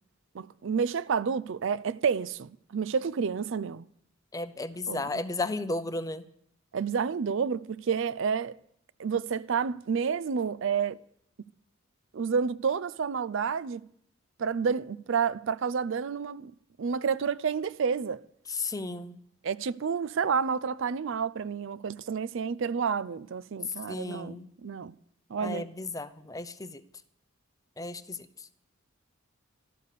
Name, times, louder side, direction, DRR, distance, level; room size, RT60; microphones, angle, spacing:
voice 1, 0.3-3.9 4.9-5.2 6.7-8.5 9.0-11.0 12.1-13.8 14.4-16.5 16.8-18.2 19.4-24.9 25.3-25.7, right 6 dB, 65° right, 0.4 m, -30 dB
voice 2, 4.3-6.2 18.5-19.2 23.9-24.5 25.4-26.8 27.8-28.2, left 2 dB, 15° left, 0.6 m, -34 dB
12.5 x 12.5 x 6.6 m
head